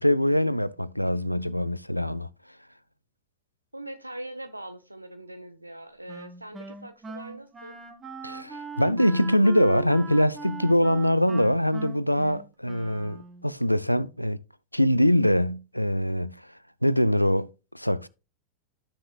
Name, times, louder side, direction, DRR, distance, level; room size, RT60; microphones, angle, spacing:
voice 1, 0.0-2.3 8.2-14.4 14.7-16.3 16.8-17.5 17.7-18.1, equal, 90° left, 0.4 m, -23 dB
voice 2, 3.7-7.8, right 1 dB, 85° right, 1.0 m, -41 dB
Wind instrument woodwind instrument, 6.1-13.5, right 4 dB, 15° right, 1.6 m, -40 dB
13.0 x 6.3 x 2.3 m
figure-of-eight pair, 90°, 0 cm